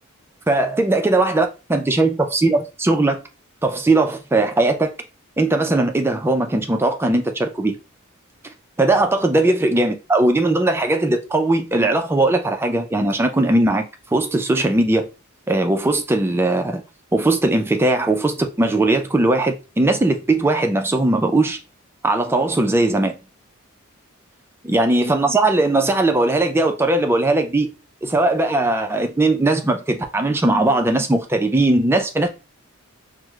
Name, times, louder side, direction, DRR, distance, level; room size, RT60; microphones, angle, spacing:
voice 1, 0.5-3.2 3.6-4.9 5.4-7.8 8.8-13.8 14.1-15.1 15.5-16.8 17.1-21.6 22.0-23.1 24.6-27.7 28.0-32.3, right 2 dB, 10° right, 0.3 m, -19 dB
4.6 x 2.0 x 2.2 m
head